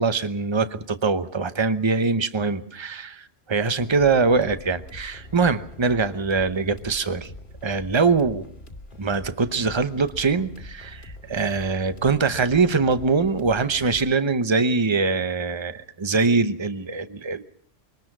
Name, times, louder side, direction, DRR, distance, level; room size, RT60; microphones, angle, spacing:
voice 1, 0.0-7.3 7.6-8.4 9.0-17.4, right 4 dB, 25° right, 11 dB, 1.0 m, -23 dB
sound 1, 3.8-14.1, left 1 dB, 50° left, 2.8 m, -43 dB
23.5 x 19.5 x 6.1 m, 0.62 s
omnidirectional pair, 1.1 m